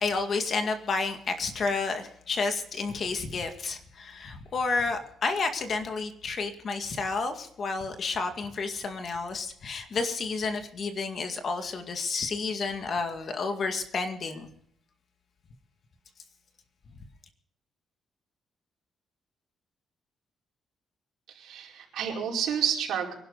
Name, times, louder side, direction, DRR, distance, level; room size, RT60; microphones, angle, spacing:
voice 1, 0.0-14.5, left 4 dB, 45° left, 6 dB, 2.1 m, -30 dB
voice 2, 21.3-23.2, right 8 dB, 80° right, -2 dB, 5.1 m, -30 dB
25.0 x 12.0 x 4.0 m, 0.66 s
cardioid pair, 150°, 0 cm